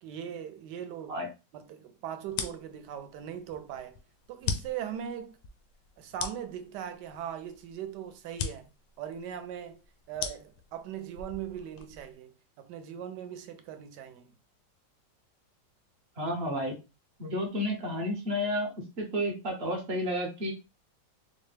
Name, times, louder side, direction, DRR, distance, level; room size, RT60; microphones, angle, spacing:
voice 1, 0.0-1.2 1.5-4.0 4.3-5.4 6.0-8.7 9.0-9.8 10.1-14.3, right 9 dB, 75° right, 1.1 m, -40 dB
sound 1, 2.3-12.1, left 6 dB, 85° left, 1.3 m, -40 dB
voice 2, 16.2-16.7 17.2-18.7 19.0-20.5, equal, 50° right, 0.8 m, -31 dB
4.3 x 2.1 x 3.2 m
omnidirectional pair, 2.0 m